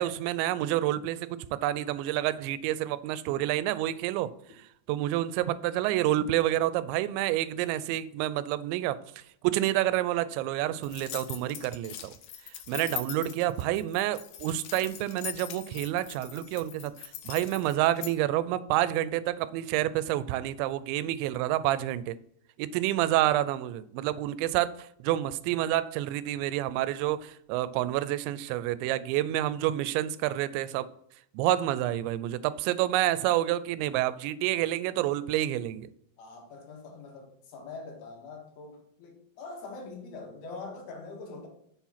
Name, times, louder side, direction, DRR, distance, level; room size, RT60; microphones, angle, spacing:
voice 1, 0.0-4.3 4.9-9.0 9.4-12.1 12.7-22.2 22.6-30.9 31.3-35.9, right 14 dB, 85° right, 2.8 m, -28 dB
sound 1, 10.8-18.1, left 11 dB, 90° left, 1.9 m, -41 dB
voice 2, 36.2-41.5, left 3 dB, 70° left, 3.2 m, -43 dB
7.4 x 7.2 x 5.7 m
omnidirectional pair, 5.2 m